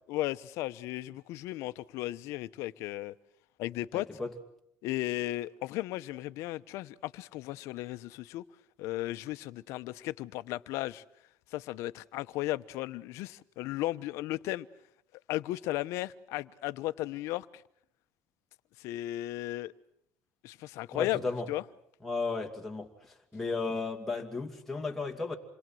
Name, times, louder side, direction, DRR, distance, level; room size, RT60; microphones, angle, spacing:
voice 1, 0.1-3.1 3.6-4.1 4.8-8.4 8.8-11.0 11.5-14.7 15.3-17.6 18.8-19.7 20.4-21.2 21.5-21.6, left 16 dB, 75° left, 0.9 m, -35 dB
voice 2, 3.9-4.3 20.9-21.5 22.0-25.4, left 3 dB, 5° left, 2.7 m, -34 dB
28.0 x 22.0 x 7.8 m
cardioid pair, 135°, 5 cm